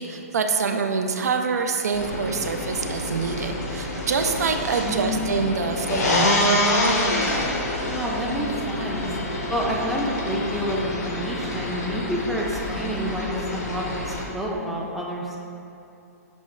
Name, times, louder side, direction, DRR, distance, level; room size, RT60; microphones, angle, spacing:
voice 1, 0.0-6.8, right 5 dB, 75° right, 5 dB, 0.3 m, -26 dB
sound 1, 1.9-14.3, left 1 dB, 80° left, 0.8 m, -27 dB
voice 2, 4.8-5.3 7.9-9.1 9.5-15.3, equal, ahead, -4 dB, 0.4 m, -28 dB
6.0 x 2.2 x 3.5 m, 2.6 s
hypercardioid pair, 130°, 9 cm